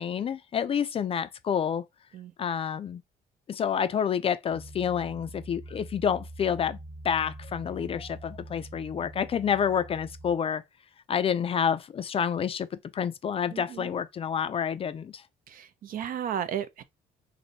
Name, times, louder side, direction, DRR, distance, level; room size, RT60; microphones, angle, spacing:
voice 1, 0.0-1.8 2.4-3.0 3.5-6.8 7.0-10.6 11.1-15.2, left 8 dB, 35° left, 0.4 m, -28 dB
sound 1, 4.5-10.4, right 1 dB, 5° right, 0.9 m, -44 dB
voice 2, 13.5-13.9 15.5-16.8, right 9 dB, 55° right, 0.6 m, -34 dB
3.2 x 2.6 x 4.0 m
cardioid pair, 110°, 17 cm